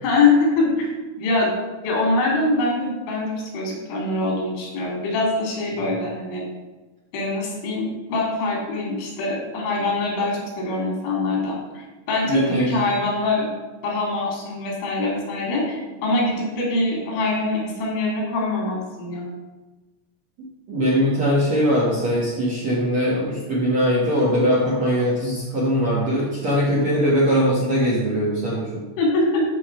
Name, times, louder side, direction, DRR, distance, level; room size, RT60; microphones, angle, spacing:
voice 1, 0.0-0.9 1.2-1.5 1.8-6.4 7.1-13.5 13.8-19.3 29.0-29.4, left 2 dB, 85° left, -2 dB, 5.2 m, -23 dB
voice 2, 12.2-12.9 20.7-28.8, equal, 45° right, -7 dB, 2.6 m, -21 dB
13.0 x 4.7 x 5.9 m, 1.2 s
omnidirectional pair, 5.2 m